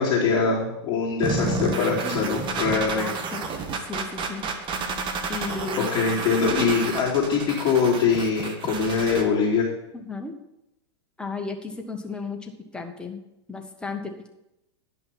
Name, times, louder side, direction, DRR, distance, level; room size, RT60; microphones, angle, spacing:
voice 1, 0.0-3.1 5.8-9.6, left 5 dB, 30° left, -9 dB, 2.9 m, -23 dB
sound 1, 1.2-9.2, right 4 dB, 35° right, 1.3 m, -30 dB
voice 2, 2.7-3.5 3.8-4.5 5.3-5.9 6.4-6.7 9.9-10.3 11.2-13.2 13.5-14.3, left 3 dB, 5° left, 2 dB, 1.4 m, -34 dB
10.5 x 5.7 x 5.9 m, 0.87 s
hypercardioid pair, 115°, 15 cm